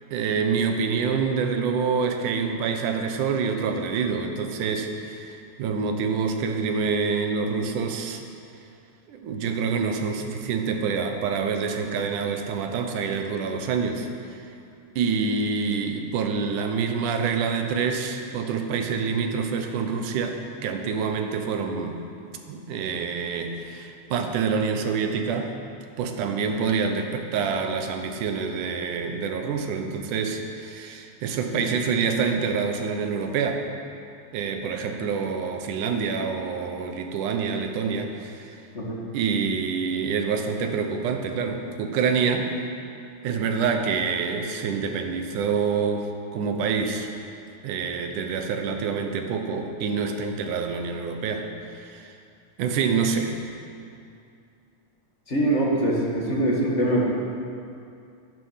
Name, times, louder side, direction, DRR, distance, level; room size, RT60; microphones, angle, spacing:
voice 1, 0.1-8.2 9.1-14.5 15.0-22.0 22.5-25.5 26.0-33.6 34.3-38.6 39.1-42.6 43.2-47.1 47.6-51.5 51.7-52.1 52.6-53.4, right 5 dB, 75° right, 5 dB, 2.5 m, -26 dB
voice 2, 55.3-57.2, right 1 dB, 30° left, -3 dB, 1.6 m, -23 dB
13.5 x 12.5 x 5.7 m, 2.5 s
omnidirectional pair, 3.7 m